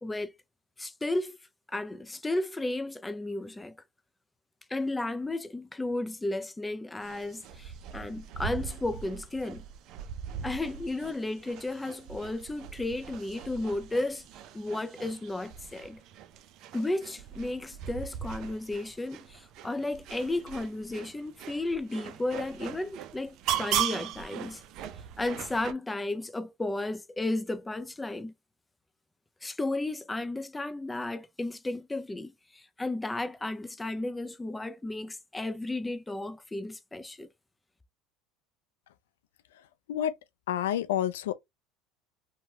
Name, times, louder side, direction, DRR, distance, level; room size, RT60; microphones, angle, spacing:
voice 1, 0.0-0.3 0.8-1.4 1.7-3.8 4.7-9.6 10.4-14.2 14.5-16.0 16.7-24.6 25.2-28.3 29.4-37.3, left 2 dB, 10° left, 0.4 m, -33 dB
sound 1, 7.0-25.7, right 9 dB, 55° right, 0.4 m, -39 dB
voice 2, 40.5-41.3, left 11 dB, 85° left, 0.4 m, -28 dB
3.0 x 2.2 x 2.7 m
supercardioid pair, 95°, 0 cm